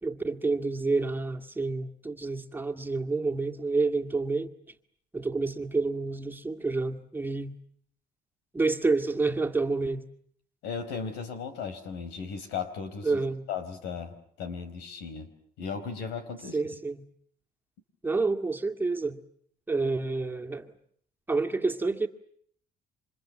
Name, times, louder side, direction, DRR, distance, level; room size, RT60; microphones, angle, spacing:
voice 1, 0.0-4.5 5.1-7.5 8.5-10.1 13.0-13.5 16.5-17.0 18.0-19.2 19.7-20.7 21.3-22.1, right 3 dB, 10° right, 5 dB, 2.1 m, -28 dB
voice 2, 10.6-13.1 13.5-15.3 15.6-16.6, left 6 dB, 90° left, 10 dB, 4.8 m, -36 dB
29.0 x 26.0 x 7.6 m, 0.64 s
cardioid pair, 110°, 17 cm